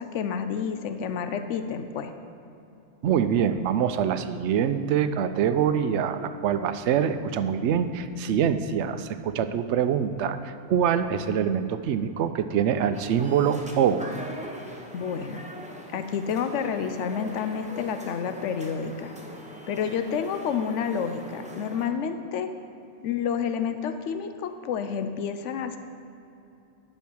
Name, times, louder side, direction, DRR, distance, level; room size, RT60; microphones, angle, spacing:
voice 1, 0.0-2.1 14.9-15.4 15.9-19.1 19.7-22.5 23.0-25.8, left 7 dB, 85° left, 8 dB, 1.0 m, -29 dB
voice 2, 3.0-14.1, right 8 dB, 75° right, 10 dB, 0.8 m, -25 dB
sound 1, 12.9-21.9, equal, 10° right, 0.7 m, -42 dB
10.5 x 5.5 x 6.1 m, 2.7 s
omnidirectional pair, 1.2 m